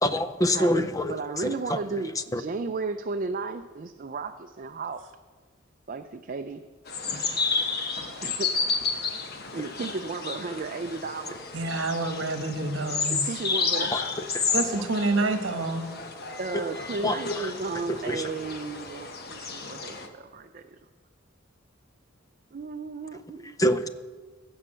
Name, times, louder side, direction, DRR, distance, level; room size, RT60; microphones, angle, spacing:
voice 1, 0.0-2.0 2.3-2.4 13.9-14.0 14.3-14.8 16.5-16.6 17.0-18.3 23.6-23.9, left 1 dB, 15° left, 11 dB, 0.5 m, -27 dB
voice 2, 0.5-5.0 5.9-6.6 8.2-8.5 9.5-11.4 13.1-13.9 16.4-20.6 22.5-23.6, right 4 dB, 45° right, 6 dB, 0.4 m, -34 dB
sound 1, 6.9-20.1, left 4 dB, 50° left, 1.1 m, -31 dB
voice 3, 11.5-13.4 14.5-15.9, right 2 dB, 65° right, 7 dB, 1.2 m, -28 dB
15.0 x 5.6 x 7.6 m, 1.4 s
head